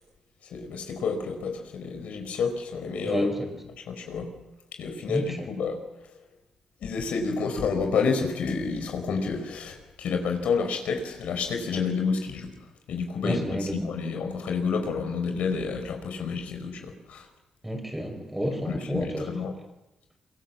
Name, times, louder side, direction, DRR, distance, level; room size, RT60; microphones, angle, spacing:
voice 1, 0.5-3.3 3.8-4.3 4.8-5.8 6.8-12.5 12.9-17.3 18.6-19.5, left 5 dB, 75° left, 5 dB, 5.0 m, -29 dB
voice 2, 13.2-13.8 17.6-19.3, equal, 5° right, 4 dB, 5.5 m, -29 dB
26.5 x 25.0 x 7.5 m, 0.99 s
cardioid pair, 130°, 2 cm